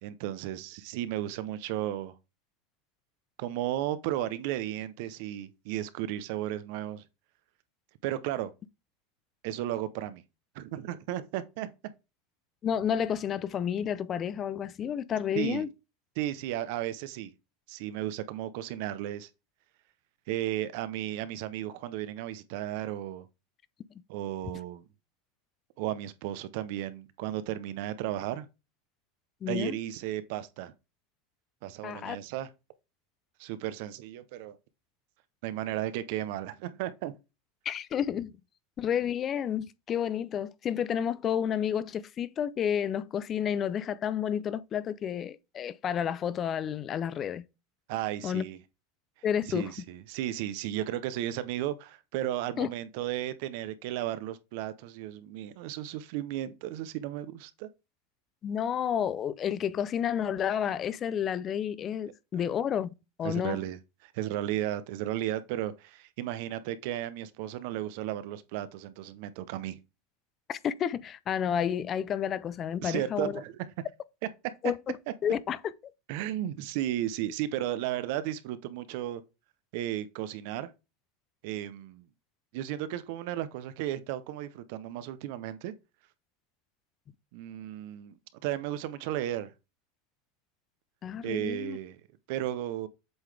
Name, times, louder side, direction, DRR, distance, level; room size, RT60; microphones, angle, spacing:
voice 1, 0.0-2.1 3.4-7.0 8.0-8.5 9.4-10.2 10.5-11.7 15.3-15.7 16.2-17.3 17.7-19.3 20.3-23.3 24.1-24.8 25.8-28.5 29.5-30.7 31.6-32.5 33.4-34.6 35.4-37.1 47.9-48.6 49.5-57.7 63.2-69.8 72.8-73.7 76.1-79.2 79.7-80.7 81.4-82.1 82.5-85.7 87.3-88.1 88.4-89.5 91.2-92.0 92.3-92.9, right 13 dB, 65° right, 0.7 m, -34 dB
voice 2, 12.6-15.7 29.4-29.8 31.8-32.2 37.6-38.3 38.8-47.4 48.2-48.4 49.2-49.7 52.6-52.7 58.4-63.6 70.5-73.4 74.6-74.7 75.2-75.6 91.0-91.8, left 8 dB, 35° left, 0.4 m, -30 dB
7.9 x 3.8 x 3.3 m
supercardioid pair, 110°, 0 cm